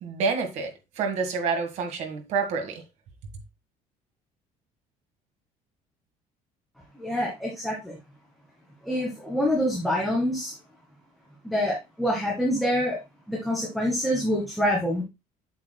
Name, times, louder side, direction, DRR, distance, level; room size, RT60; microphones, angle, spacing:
voice 1, 0.0-2.8, right 5 dB, 55° right, 1.8 m, -28 dB
voice 2, 7.0-8.0 8.8-10.5 11.4-13.0 13.3-15.0, equal, ahead, 1.9 m, -26 dB
8.2 x 7.0 x 2.2 m
cardioid pair, 180°, 14 cm